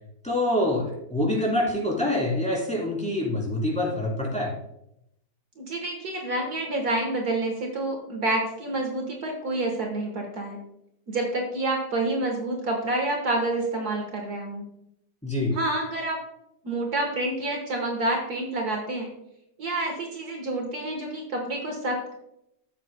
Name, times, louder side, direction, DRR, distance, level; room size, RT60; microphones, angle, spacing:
voice 1, 0.2-4.5 15.2-15.5, left 1 dB, 5° left, -4 dB, 3.1 m, -25 dB
voice 2, 5.6-10.6 11.1-14.7 15.5-16.2 16.6-19.1 19.6-22.1, right 2 dB, 60° right, 1 dB, 1.8 m, -28 dB
15.0 x 7.5 x 2.2 m, 0.79 s
omnidirectional pair, 1.9 m